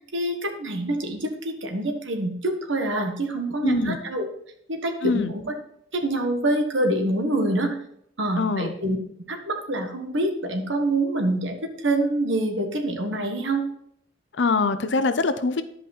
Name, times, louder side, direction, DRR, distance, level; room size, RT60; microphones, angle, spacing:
voice 1, 0.1-4.3 4.7-5.5 5.9-7.8 8.2-9.0 9.3-13.6, right 1 dB, 90° right, 4 dB, 1.4 m, -26 dB
voice 2, 3.6-4.0 5.0-5.3 8.4-8.7 14.3-15.6, left 3 dB, 70° left, 11 dB, 0.6 m, -23 dB
11.0 x 5.3 x 4.2 m, 0.69 s
head